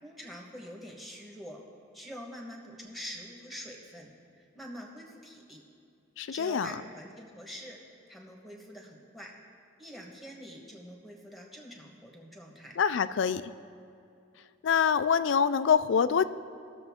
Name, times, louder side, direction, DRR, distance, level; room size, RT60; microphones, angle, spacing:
voice 1, 0.0-1.6 1.9-4.1 4.4-5.6 6.3-7.8 8.1-9.3 9.8-12.7, equal, ahead, 0 dB, 1.2 m, -45 dB
voice 2, 6.2-6.7 12.8-13.4 14.6-16.3, left 7 dB, 65° left, 14 dB, 0.3 m, -25 dB
18.0 x 6.8 x 3.6 m, 2.6 s
head